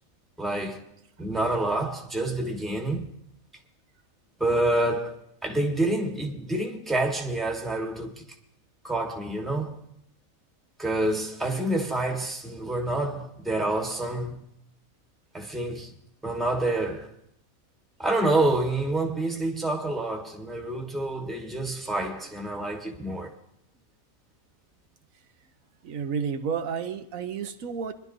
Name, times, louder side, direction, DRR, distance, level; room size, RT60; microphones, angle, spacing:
voice 1, 0.4-0.8 1.2-3.0 4.4-8.2 8.8-9.7 10.8-14.4 15.3-15.9 16.2-17.1 18.0-23.3, right 2 dB, ahead, 1.1 m, -27 dB
voice 2, 25.8-27.9, right 6 dB, 80° right, 1.1 m, -31 dB
24.0 x 11.0 x 2.6 m
omnidirectional pair, 1.4 m